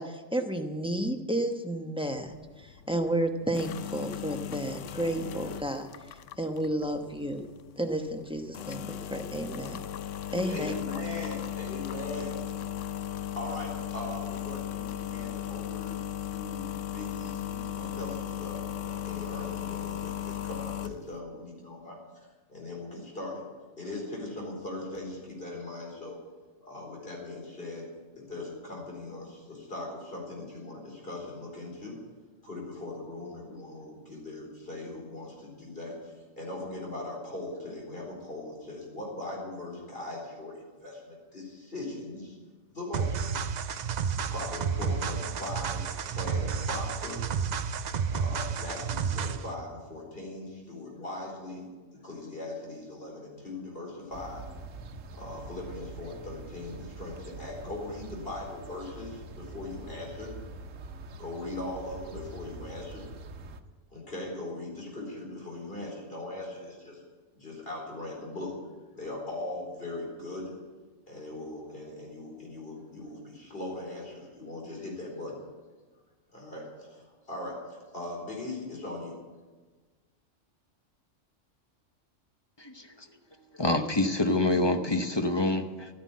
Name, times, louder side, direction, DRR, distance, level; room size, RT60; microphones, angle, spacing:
voice 1, 0.0-7.5 7.8-9.8 10.3-10.7, right 1 dB, 5° right, 4 dB, 0.9 m, -32 dB
sound 1, 2.1-21.2, left 11 dB, 80° left, 1.0 m, -37 dB
voice 2, 10.4-12.4 13.4-22.0 22.5-23.4 23.8-26.2 26.6-27.9 28.1-32.0 32.4-42.4 42.7-43.2 44.3-47.2 48.1-51.7 52.0-54.4 55.1-60.3 61.2-63.1 63.9-67.0 67.3-68.6 68.9-70.6 71.1-75.4 76.3-79.2, left 2 dB, 50° left, -1 dB, 4.6 m, -40 dB
sound 2, 42.9-49.5, right 6 dB, 55° right, 0.5 m, -31 dB
sound 3, 54.1-63.6, right 3 dB, 85° right, 1.3 m, -44 dB
voice 3, 83.6-85.9, left 2 dB, 25° left, 6 dB, 0.8 m, -26 dB
13.0 x 9.7 x 8.5 m, 1.3 s
omnidirectional pair, 1.3 m